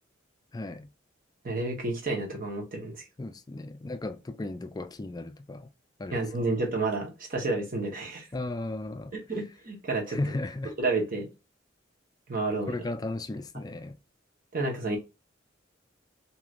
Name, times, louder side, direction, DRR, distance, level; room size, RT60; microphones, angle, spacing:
voice 1, 0.5-0.9 3.2-5.7 6.0-6.2 8.3-9.1 10.1-10.8 12.6-14.0, left 2 dB, 20° left, 0.4 m, -35 dB
voice 2, 1.4-3.0 6.1-8.3 9.3-10.2 10.8-11.3 12.3-12.8 14.5-15.0, right 2 dB, 50° right, 1.1 m, -30 dB
3.1 x 2.8 x 2.5 m
head